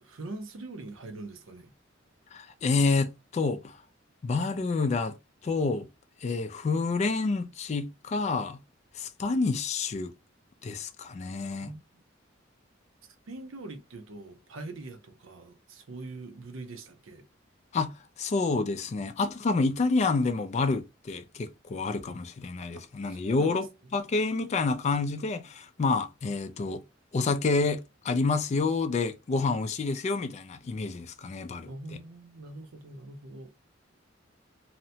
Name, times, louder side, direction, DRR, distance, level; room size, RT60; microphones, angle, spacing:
voice 1, 0.0-1.7 11.6-11.8 13.3-17.2 23.2-23.6 31.7-33.5, right 2 dB, 80° right, 0.6 m, -42 dB
voice 2, 2.3-3.8 4.2-5.2 5.4-5.9 6.2-8.6 9.0-10.1 10.6-11.7 17.7-17.9 18.2-23.7 23.9-26.8 27.1-27.8 28.0-32.0, left 3 dB, 35° left, 0.3 m, -28 dB
2.8 x 2.1 x 2.7 m
head